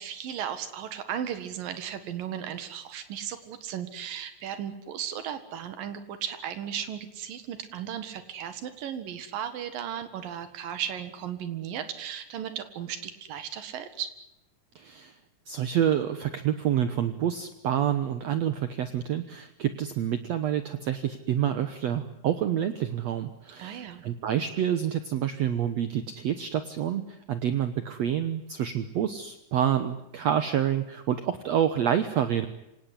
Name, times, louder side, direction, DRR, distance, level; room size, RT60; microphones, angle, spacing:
voice 1, 0.0-14.1 23.6-24.0, right 9 dB, 90° right, 10 dB, 3.5 m, -36 dB
voice 2, 14.8-15.2 15.5-32.5, right 10 dB, 60° right, 10 dB, 2.0 m, -28 dB
26.0 x 18.5 x 9.9 m, 0.88 s
omnidirectional pair, 3.9 m